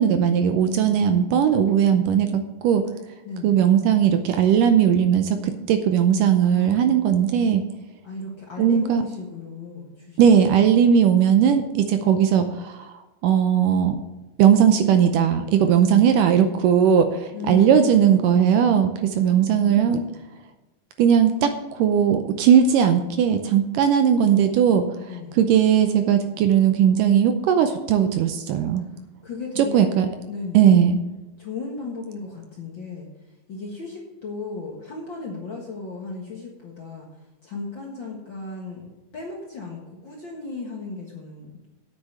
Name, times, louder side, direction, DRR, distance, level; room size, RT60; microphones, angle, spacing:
voice 1, 0.0-2.8 3.4-7.6 8.6-9.0 10.2-12.9 13.2-14.0 14.4-20.0 21.0-24.9 25.4-28.8 29.6-30.1 30.5-31.0, right 8 dB, 80° right, 8 dB, 2.1 m, -18 dB
voice 2, 0.6-1.0 3.2-3.8 6.4-6.9 8.0-10.5 13.5-14.2 17.3-18.9 19.2-20.1 25.0-25.5 28.9-30.8 31.4-33.1 33.5-37.1 37.4-38.9 39.1-41.7, left 4 dB, 50° left, -2 dB, 1.6 m, -36 dB
8.4 x 8.2 x 7.0 m, 1.1 s
omnidirectional pair, 4.2 m